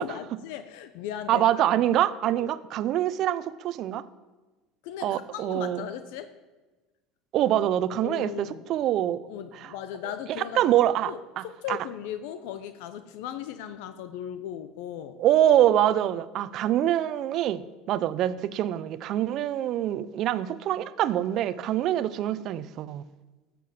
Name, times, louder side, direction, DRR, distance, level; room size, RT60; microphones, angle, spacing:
voice 1, 0.0-1.6 2.3-2.5 4.8-6.3 8.0-8.6 9.3-10.7 11.1-11.2 11.4-15.2, left 10 dB, 75° left, 10 dB, 0.7 m, -37 dB
voice 2, 1.3-4.0 5.0-5.9 7.3-9.2 9.5-9.7 10.6-11.8 15.2-23.0, right 12 dB, 55° right, 16 dB, 0.6 m, -25 dB
13.5 x 6.9 x 7.6 m, 1.2 s
supercardioid pair, 100°, 0 cm